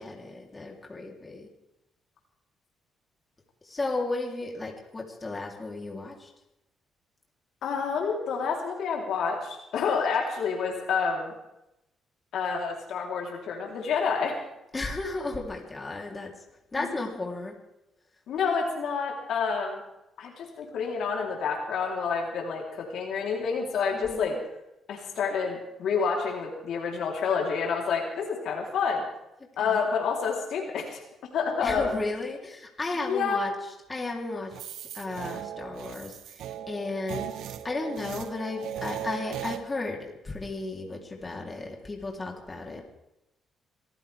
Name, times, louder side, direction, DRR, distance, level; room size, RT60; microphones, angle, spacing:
voice 1, 0.0-1.5 3.6-6.3 14.7-16.3 16.7-17.5 24.1-24.4 29.6-29.8 31.6-33.5 33.9-42.8, left 3 dB, 25° left, 0 dB, 3.5 m, -34 dB
voice 2, 7.6-11.3 12.3-14.4 16.8-17.0 18.3-19.8 20.2-24.4 24.9-29.0 29.6-31.0 31.3-32.0 33.1-33.5 42.7-42.8, left 5 dB, 75° left, 0 dB, 3.8 m, -28 dB
sound 1, 34.5-39.6, right 10 dB, 85° right, 1.0 m, -38 dB
26.0 x 15.0 x 3.6 m, 0.88 s
cardioid pair, 90°, 0 cm